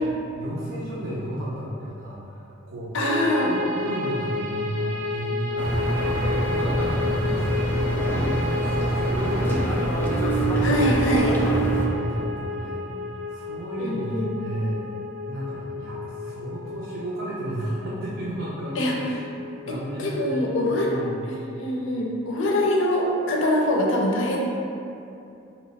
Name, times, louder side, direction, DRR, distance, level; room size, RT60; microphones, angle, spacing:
voice 1, 0.1-3.0 3.4-3.6 3.8-5.8 6.2-8.3 8.7-10.8 11.1-11.5 11.9-12.8 13.3-14.9 15.2-19.0 19.7-21.1, right 1 dB, 85° right, -7 dB, 0.5 m, -32 dB
voice 2, 2.9-3.5 10.6-11.4 13.8-14.3 18.8-19.0 19.7-20.9 21.2-24.4, left 1 dB, 70° left, -1 dB, 0.5 m, -24 dB
sound 1, 3.0-21.3, left 3 dB, 40° right, 0.6 m, -32 dB
sound 2, 5.6-11.9, right 2 dB, 10° left, 0.3 m, -25 dB
2.8 x 2.2 x 4.0 m, 2.7 s
head